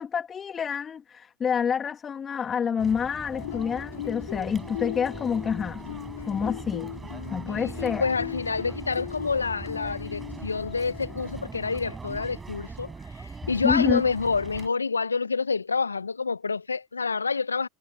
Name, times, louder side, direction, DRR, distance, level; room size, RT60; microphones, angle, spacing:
voice 1, 0.0-5.8 6.3-6.9 7.3-8.0 13.6-14.0, left 7 dB, 30° left, 2.2 m, -28 dB
sound 1, 2.8-14.7, right 4 dB, 20° right, 7.4 m, -40 dB
sound 2, 3.3-11.4, left 13 dB, 70° left, 5.1 m, -38 dB
voice 2, 7.5-17.7, left 4 dB, 85° left, 1.1 m, -28 dB
figure-of-eight pair, 80°, 0 cm